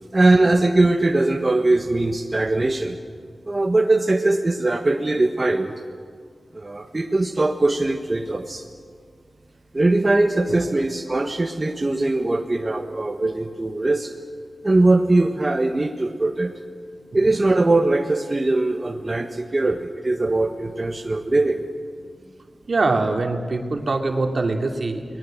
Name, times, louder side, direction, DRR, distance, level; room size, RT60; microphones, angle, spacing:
voice 1, 0.1-2.9 3.4-5.8 6.5-8.6 9.7-14.1 14.6-16.5 17.1-21.6, right 2 dB, 40° right, 3 dB, 1.5 m, -21 dB
voice 2, 22.7-25.0, right 3 dB, 65° right, 3 dB, 2.7 m, -23 dB
28.5 x 20.0 x 7.8 m, 2.1 s
cardioid pair, 45°, 0 cm